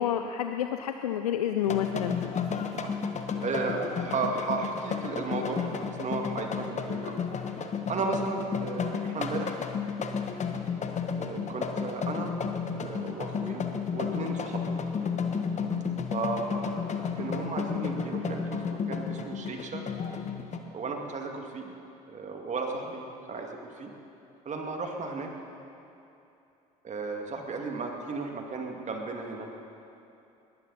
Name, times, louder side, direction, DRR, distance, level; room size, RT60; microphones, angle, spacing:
voice 1, 0.0-2.2, left 10 dB, 85° left, 7 dB, 0.5 m, -29 dB
sound 1, 1.7-20.6, left 6 dB, 40° left, 1.3 m, -32 dB
voice 2, 3.4-7.2 7.9-9.6 11.1-12.4 12.7-13.6 13.9-14.8 16.1-19.8 20.7-21.7 22.1-23.9 24.5-25.3 26.8-29.5, right 3 dB, 40° right, 2 dB, 2.3 m, -34 dB
21.0 x 15.0 x 4.2 m, 2.8 s
hypercardioid pair, 60°, 19 cm